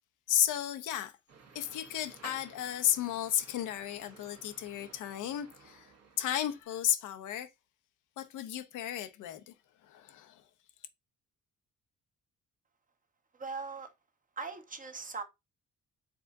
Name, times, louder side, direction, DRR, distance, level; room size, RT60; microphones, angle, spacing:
voice 1, 0.3-1.1 1.5-5.9 6.2-7.5 8.2-9.5 9.9-10.4, left 11 dB, 85° left, 0.8 m, -33 dB
sound 1, 1.3-6.6, right 5 dB, 55° right, 1.3 m, -55 dB
voice 2, 13.4-13.9 14.4-15.2, right 4 dB, 25° right, 0.9 m, -39 dB
4.8 x 3.7 x 2.6 m
cardioid pair, 90°, 30 cm